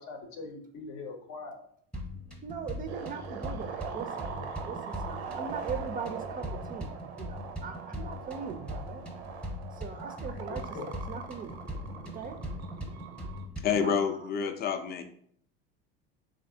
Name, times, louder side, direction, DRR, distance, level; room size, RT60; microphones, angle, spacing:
voice 1, 0.0-1.6 4.3-4.4 9.9-11.0, left 4 dB, 65° left, 4 dB, 0.7 m, -43 dB
sound 1, 1.9-13.9, left 1 dB, 5° left, 0.8 m, -41 dB
voice 2, 2.4-9.0 9.8-10.6 11.1-11.6 12.1-12.4 13.8-14.0, right 6 dB, 30° right, 6 dB, 0.3 m, -40 dB
sound 2, 2.9-13.4, right 6 dB, 90° right, 0.5 m, -42 dB
voice 3, 13.6-15.0, left 6 dB, 30° left, 8 dB, 0.4 m, -28 dB
3.2 x 2.5 x 2.7 m, 0.63 s
hypercardioid pair, 80°, 31 cm